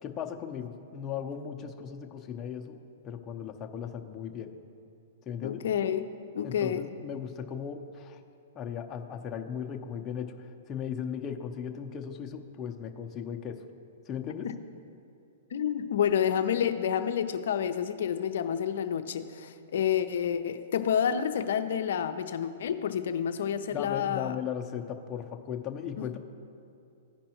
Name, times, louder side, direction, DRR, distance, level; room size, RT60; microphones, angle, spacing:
voice 1, 0.0-4.5 5.3-5.6 6.4-8.2 8.5-13.6 14.1-14.5 23.7-26.2, left 8 dB, 25° left, 3 dB, 0.7 m, -37 dB
voice 2, 5.4-6.0 6.3-6.8 14.4-14.5 15.5-24.3 26.0-26.1, left 8 dB, 70° left, 9 dB, 0.6 m, -29 dB
15.0 x 5.3 x 3.0 m, 2.6 s
hypercardioid pair, 125°, 0 cm